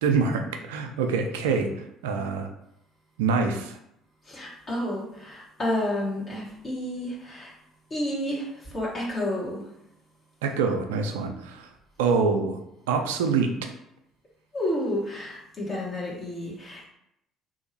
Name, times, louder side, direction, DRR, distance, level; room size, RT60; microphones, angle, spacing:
voice 1, 0.0-2.5 3.2-3.8 10.4-11.7 12.0-12.6 12.9-13.7, right 5 dB, 75° right, 5 dB, 0.3 m, -25 dB
voice 2, 4.2-7.5 7.9-9.6 14.5-16.8, left 1 dB, 35° left, -6 dB, 1.0 m, -30 dB
2.8 x 2.7 x 2.7 m, 0.79 s
figure-of-eight pair, 55°, 0 cm